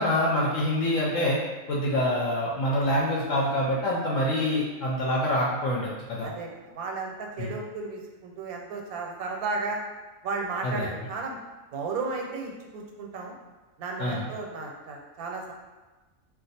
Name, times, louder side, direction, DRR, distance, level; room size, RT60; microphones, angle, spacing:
voice 1, 0.0-1.4 1.7-6.3 7.4-7.5 10.6-10.9 14.0-14.3, left 1 dB, 70° left, -4 dB, 0.9 m, -26 dB
voice 2, 6.7-9.8 10.2-11.4 11.7-13.3 13.8-15.5, right 4 dB, 85° right, 1 dB, 1.1 m, -34 dB
2.4 x 2.3 x 4.0 m, 1.2 s
omnidirectional pair, 1.5 m